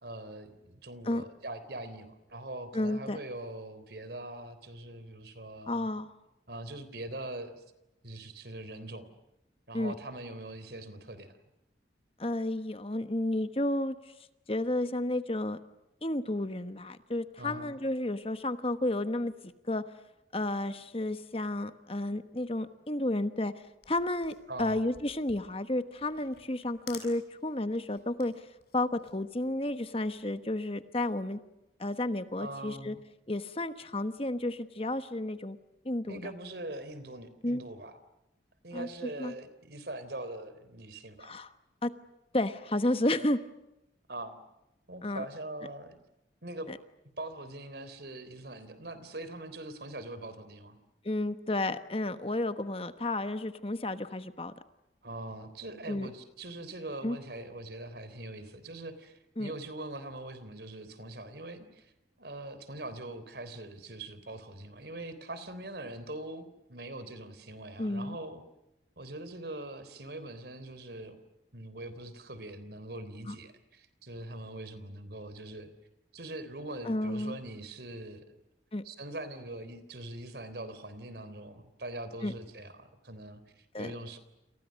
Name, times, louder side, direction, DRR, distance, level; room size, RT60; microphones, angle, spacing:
voice 1, 0.0-5.8 6.5-7.6 8.0-9.1 9.7-11.3 17.4-17.8 24.5-24.8 32.4-33.0 36.1-38.0 38.6-41.3 44.1-44.4 44.9-46.0 46.4-46.7 47.2-50.8 55.0-61.9 62.2-66.4 66.7-68.4 69.0-71.2 71.5-75.7 76.1-78.4 78.8-84.2, right 1 dB, 65° right, 13 dB, 3.6 m, -42 dB
voice 2, 2.7-3.2 5.7-6.2 9.7-9.9 12.2-14.1 14.5-15.6 16.0-19.8 20.3-23.5 23.9-28.5 28.7-31.4 31.8-33.0 33.3-35.6 35.8-36.2 37.4-37.6 38.7-38.9 39.2-39.3 41.2-41.5 41.8-41.9 42.3-43.4 45.0-45.2 46.7-46.8 51.0-54.5 55.9-56.1 57.0-57.2 59.4-59.5 67.8-68.2 73.3-73.4 76.8-77.4 78.7-78.8 82.2-82.3 83.7-83.9, left 1 dB, 30° left, 10 dB, 1.2 m, -32 dB
sound 1, 23.7-30.3, left 6 dB, 60° left, 7.3 m, -53 dB
29.5 x 28.0 x 6.5 m, 0.90 s
head